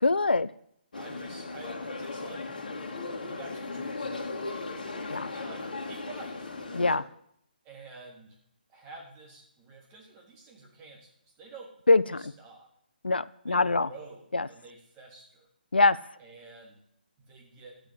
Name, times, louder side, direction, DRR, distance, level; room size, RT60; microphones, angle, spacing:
voice 1, 0.0-0.5 5.1-5.3 6.7-7.0 11.9-12.2 13.0-13.9 14.3-14.5 15.7-16.0, left 3 dB, 80° left, 18 dB, 0.5 m, -23 dB
sound 1, 0.9-7.0, left 3 dB, 60° left, 1.9 m, -37 dB
voice 2, 0.9-2.5 3.2-4.3 5.0-6.5 7.6-8.4 8.7-11.1 11.4-11.7 12.1-12.7 13.5-15.5 16.2-16.8 17.2-17.7, right 3 dB, 20° right, -1 dB, 3.7 m, -49 dB
12.0 x 8.0 x 7.8 m, 0.73 s
figure-of-eight pair, 140°, 5 cm